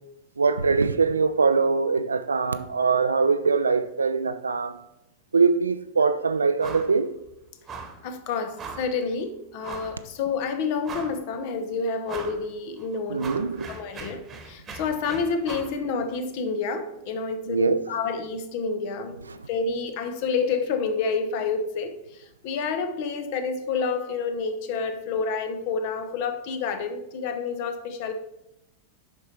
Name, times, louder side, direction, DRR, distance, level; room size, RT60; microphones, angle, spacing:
voice 1, 0.4-4.8 5.3-7.1 13.1-13.7 17.5-17.8, right 4 dB, 75° right, 0.3 m, -22 dB
sound 1, 6.6-7.0 7.2-7.3 7.7-8.0 8.6-8.9 9.6-10.0 10.4-10.5 10.8-11.4 12.1-12.4 12.8-15.8, right 5 dB, 20° right, 1.2 m, -39 dB
voice 2, 8.0-13.3 13.7-19.2 19.5-28.1, left 5 dB, 45° left, 0.9 m, -29 dB
7.1 x 5.4 x 4.4 m
figure-of-eight pair, 90°, 0 cm